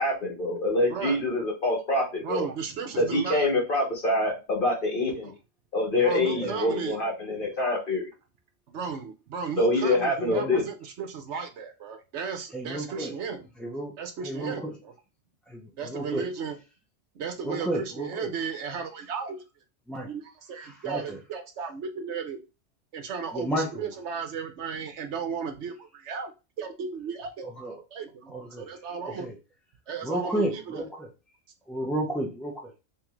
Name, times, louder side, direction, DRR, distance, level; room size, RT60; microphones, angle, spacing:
voice 1, 0.0-2.5 3.0-5.3 5.7-8.1 9.6-10.6, left 2 dB, 45° left, -1 dB, 1.6 m, -25 dB
voice 2, 0.9-1.2 2.2-3.5 5.2-5.3 6.0-7.0 8.7-13.4 14.0-14.9 15.8-16.6 17.1-19.4 20.1-22.4 22.9-26.3 26.6-27.4 27.9-29.3 29.9-30.9, right 6 dB, 70° right, 6 dB, 1.0 m, -35 dB
voice 3, 12.5-13.1 13.6-13.9 14.2-14.7 15.5-16.3 17.4-18.3 19.9-20.1 20.6-21.2 23.3-23.9 27.4-27.8 28.3-28.7 29.2-29.3 30.0-31.1 31.7-32.7, right 1 dB, ahead, -1 dB, 0.3 m, -32 dB
3.6 x 3.2 x 3.0 m, 0.28 s
omnidirectional pair, 1.3 m